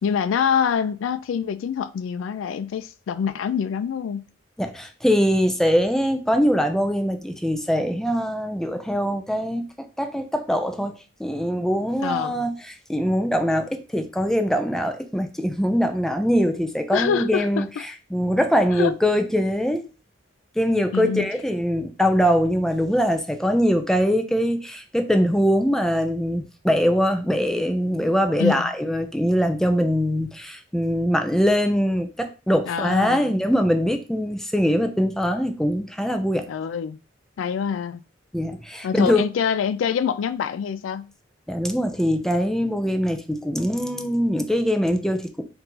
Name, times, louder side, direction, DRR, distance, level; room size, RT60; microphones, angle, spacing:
voice 1, 0.0-4.2 12.0-12.3 16.9-17.8 18.7-18.9 20.9-21.3 28.4-28.6 32.7-33.3 36.5-37.0 37.4-38.0 38.8-41.1, left 7 dB, 80° left, 0.3 m, -25 dB
voice 2, 4.6-10.9 11.2-17.7 18.1-19.9 20.6-36.5 38.3-39.2 41.5-45.4, equal, 5° left, 0.5 m, -22 dB
4.5 x 2.6 x 3.8 m
head